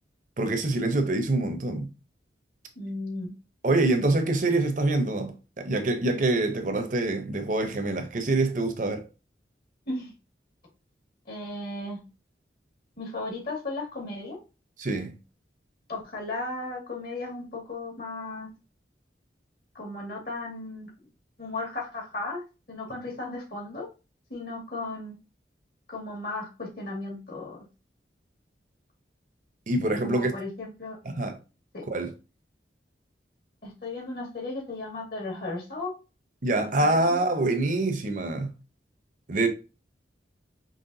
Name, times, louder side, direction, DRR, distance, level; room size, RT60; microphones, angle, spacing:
voice 1, 0.4-1.9 3.6-9.1 14.8-15.1 29.7-30.3 31.0-31.4 31.9-32.1 36.4-38.5 39.3-39.5, right 2 dB, 45° right, 0.7 m, -25 dB
voice 2, 2.8-3.3 9.9-10.1 11.3-12.0 13.0-14.4 15.9-18.5 19.7-20.9 21.4-22.4 22.7-23.9 24.3-25.2 25.9-27.6 30.0-31.0 31.7-31.8 33.6-35.9 36.6-36.7 37.1-37.3, left 2 dB, 55° left, 2.0 m, -35 dB
5.5 x 3.1 x 2.6 m
head